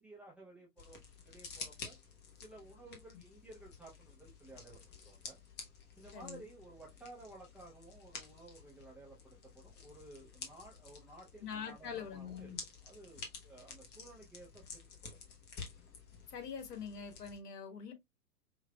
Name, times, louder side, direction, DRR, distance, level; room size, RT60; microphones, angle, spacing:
voice 1, 0.0-1.9 2.4-5.4 6.0-12.5 12.8-15.2, right 2 dB, 5° right, 0.5 m, -55 dB
sound 1, 0.8-17.4, left 5 dB, 20° left, 1.0 m, -51 dB
voice 2, 2.9-3.2 6.1-6.4 11.4-12.6 16.3-17.9, left 6 dB, 70° left, 1.6 m, -44 dB
4.8 x 3.1 x 2.2 m
hypercardioid pair, 115°, 49 cm